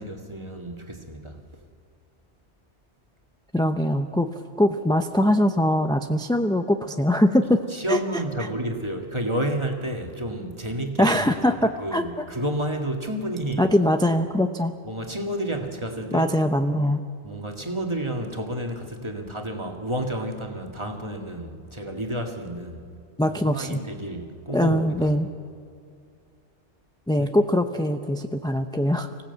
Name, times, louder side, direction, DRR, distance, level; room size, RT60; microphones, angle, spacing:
voice 1, 0.0-1.6 7.7-11.3 11.8-13.7 14.9-16.3 17.2-22.8 23.3-25.1 27.2-27.3, right 1 dB, 25° right, 3 dB, 1.9 m, -30 dB
voice 2, 3.5-8.0 8.4-8.5 11.0-12.0 13.6-14.7 16.1-17.0 23.2-23.8 24.5-25.3 27.1-29.1, left 1 dB, 5° left, 6 dB, 0.5 m, -22 dB
25.0 x 16.5 x 8.0 m, 2.4 s
omnidirectional pair, 1.2 m